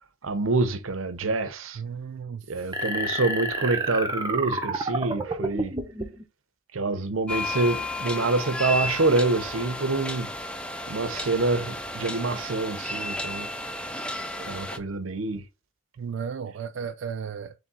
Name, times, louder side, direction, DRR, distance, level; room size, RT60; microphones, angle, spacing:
voice 1, 0.2-1.8 2.5-5.7 6.7-10.3 10.9-13.5 14.4-15.4, right 3 dB, 85° right, 0.8 m, -26 dB
voice 2, 1.8-2.8 16.0-17.5, right 6 dB, 65° right, 0.3 m, -34 dB
sound 1, 2.7-6.3, right 1 dB, 20° right, 0.8 m, -29 dB
sound 2, 7.3-14.8, left 2 dB, 5° left, 0.4 m, -33 dB
3.6 x 3.4 x 4.1 m
head